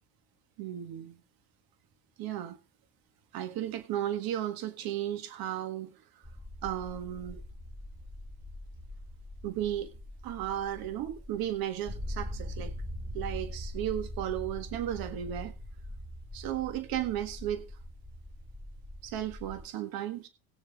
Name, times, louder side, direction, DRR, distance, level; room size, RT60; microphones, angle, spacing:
voice 1, 0.6-1.2 2.2-2.6 3.3-6.0 6.6-7.4 9.4-9.9 10.2-12.7 13.1-15.6 16.3-17.7 19.0-20.3, right 11 dB, 65° right, 1.7 m, -34 dB
sound 1, 6.2-19.7, left 1 dB, 10° right, 2.8 m, -42 dB
19.5 x 6.9 x 3.6 m
supercardioid pair, 80°, 39 cm